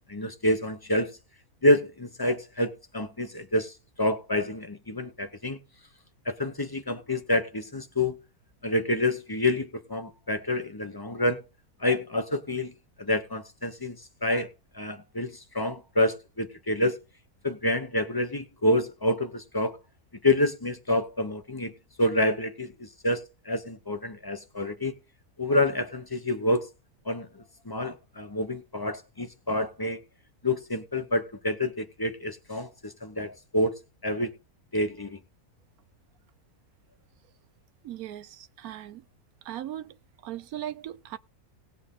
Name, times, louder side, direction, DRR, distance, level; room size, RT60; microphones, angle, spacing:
voice 1, 0.1-1.1 1.6-3.7 4.0-5.6 6.3-8.2 8.6-11.4 11.8-12.7 13.0-14.5 14.7-17.0 17.4-19.8 20.2-21.7 22.0-24.9 25.4-26.7 27.1-27.3 27.7-30.0 30.4-33.7 34.0-34.3 34.7-35.2, left 1 dB, 20° left, 0.8 m, -27 dB
voice 2, 37.8-39.0 39.4-40.0 40.2-41.2, right 12 dB, 80° right, 1.2 m, -38 dB
18.5 x 6.3 x 3.7 m
omnidirectional pair, 1.6 m